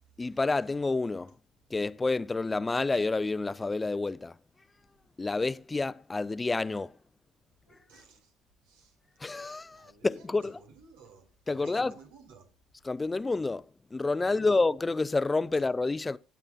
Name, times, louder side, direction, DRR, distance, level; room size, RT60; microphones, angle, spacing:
voice 1, 0.2-1.3 1.7-4.4 5.2-6.9 9.2-10.6 11.5-11.9 12.8-13.7 13.9-16.2, left 3 dB, 20° left, 0.5 m, -29 dB
voice 2, 7.7-8.3 8.6-9.0 9.7-12.5 14.2-14.6 15.5-15.6, right 4 dB, 85° right, 2.3 m, -54 dB
24.0 x 8.4 x 2.3 m
hypercardioid pair, 60°, 0 cm